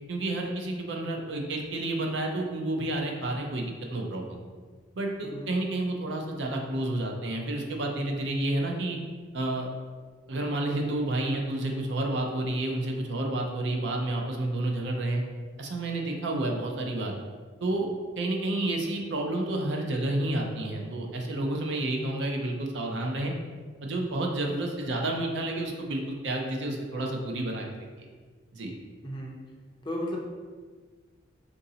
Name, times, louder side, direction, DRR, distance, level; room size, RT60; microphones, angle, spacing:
voice 1, 0.1-4.4 5.0-9.0 9.3-9.7 10.3-15.2 15.6-17.1 17.6-17.9 18.2-23.3 23.8-27.7 28.5-28.7, right 1 dB, 65° right, 1 dB, 0.5 m, -30 dB
voice 2, 29.8-30.2, left 1 dB, 25° left, -2 dB, 0.5 m, -34 dB
4.7 x 2.6 x 2.7 m, 1.5 s
head